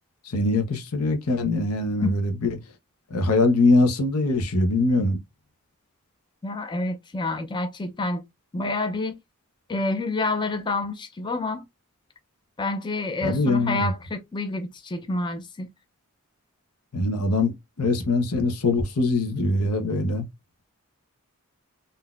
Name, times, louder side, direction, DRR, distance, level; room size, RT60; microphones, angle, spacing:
voice 1, 0.2-2.6 3.1-5.2 13.2-13.9 16.9-20.3, left 2 dB, 90° left, 0.8 m, -22 dB
voice 2, 6.4-8.2 8.5-9.2 9.7-11.6 12.6-15.7, left 2 dB, 20° left, 0.4 m, -28 dB
3.8 x 2.6 x 2.3 m
head